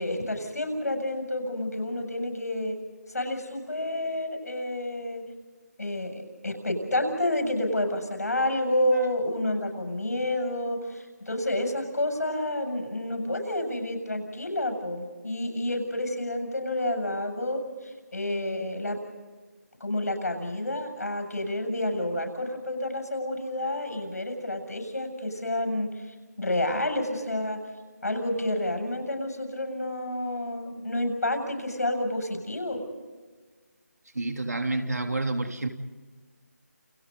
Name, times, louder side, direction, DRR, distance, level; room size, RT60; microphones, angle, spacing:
voice 1, 0.0-2.8 3.1-5.2 5.8-19.0 19.8-26.0 26.4-27.6 28.0-32.8, left 1 dB, 70° left, 4 dB, 7.4 m, -29 dB
voice 2, 34.1-35.7, right 2 dB, 70° right, 4 dB, 3.2 m, -29 dB
29.5 x 27.0 x 4.1 m, 1.4 s
figure-of-eight pair, 165°, 9 cm